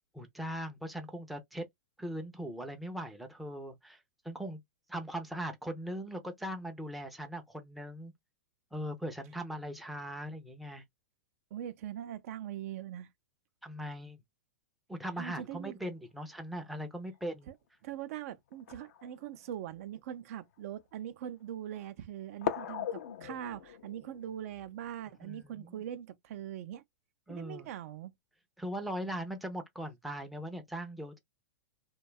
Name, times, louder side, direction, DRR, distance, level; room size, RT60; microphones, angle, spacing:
voice 1, 0.1-1.7 2.0-4.6 4.9-8.1 8.7-10.8 13.6-14.2 14.9-17.5 25.2-25.8 27.3-27.7 28.6-31.2, equal, ahead, 0.5 m, -40 dB
voice 2, 11.5-13.1 15.2-15.7 17.5-17.6 17.8-26.8 27.3-28.1, right 11 dB, 55° right, 0.4 m, -42 dB
sound 1, 17.1-17.2 18.5-19.8 20.5-20.6 22.4-25.6, left 10 dB, 70° left, 0.4 m, -40 dB
2.6 x 2.2 x 2.2 m
hypercardioid pair, 135°, 9 cm